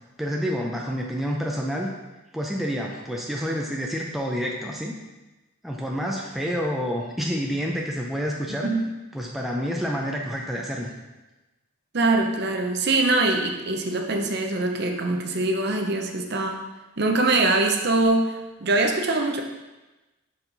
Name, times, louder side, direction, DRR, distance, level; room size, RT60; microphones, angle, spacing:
voice 1, 0.2-1.9 2.3-4.9 5.6-8.7 9.1-10.9, equal, ahead, -2 dB, 0.4 m, -28 dB
voice 2, 11.9-16.6 17.0-19.4, right 2 dB, 50° right, 3 dB, 0.6 m, -23 dB
5.5 x 4.8 x 3.9 m, 1.1 s
head